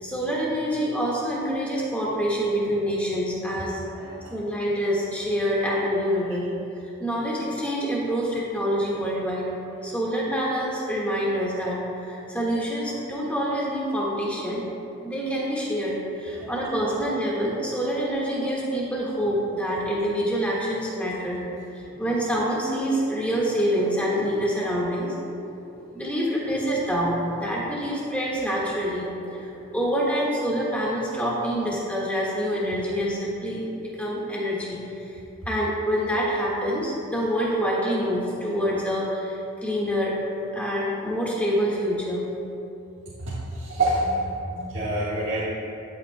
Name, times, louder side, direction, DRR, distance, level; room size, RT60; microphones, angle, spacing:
voice 1, 0.0-3.8 4.3-6.5 7.0-9.5 9.8-14.6 15.0-21.4 21.7-25.2 25.4-25.5 25.9-29.5 29.7-34.8 35.4-40.2 40.5-42.3, equal, 5° left, -5 dB, 1.6 m, -26 dB
voice 2, 43.2-44.2 44.5-45.5, right 1 dB, 65° right, -11 dB, 1.6 m, -27 dB
12.5 x 8.6 x 2.2 m, 2.8 s
head